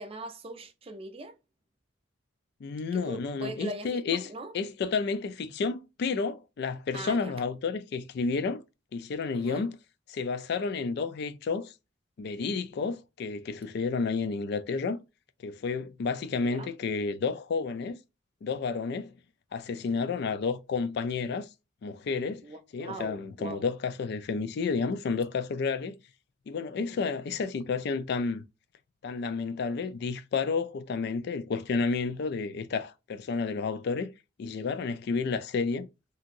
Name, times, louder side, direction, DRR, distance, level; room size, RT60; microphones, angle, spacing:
voice 1, 0.0-1.3 2.9-4.5 6.9-7.3 9.3-9.6 16.4-16.7 22.4-23.6 26.9-27.1, right 2 dB, 30° right, 0.5 m, -41 dB
voice 2, 2.6-4.3 4.5-8.6 8.9-9.8 10.1-11.7 12.2-15.0 15.4-18.0 18.4-19.1 19.5-21.5 21.8-22.4 22.7-26.0 26.5-28.4 29.0-34.1 34.4-35.9, left 4 dB, 55° left, 0.3 m, -31 dB
2.8 x 2.6 x 2.5 m
head